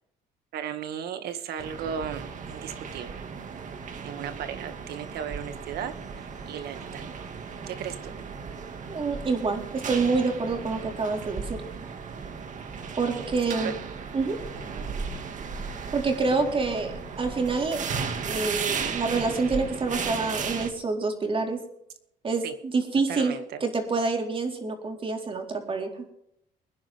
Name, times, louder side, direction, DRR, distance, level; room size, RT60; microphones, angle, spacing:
voice 1, 0.5-3.2 4.0-7.0 7.7-8.2 13.1-13.3 14.6-14.9 16.3-16.4 22.4-22.5 23.1-23.4, right 8 dB, 70° right, 9 dB, 2.1 m, -36 dB
sound 1, 1.6-20.7, right 5 dB, 50° right, 2.1 m, -35 dB
voice 2, 8.9-11.6 13.0-13.8 14.1-14.4 15.9-17.9 18.2-21.6 22.2-23.3 23.6-26.0, right 4 dB, 30° right, 2 dB, 4.0 m, -27 dB
23.0 x 10.0 x 3.6 m, 0.74 s
cardioid pair, 110°, 17 cm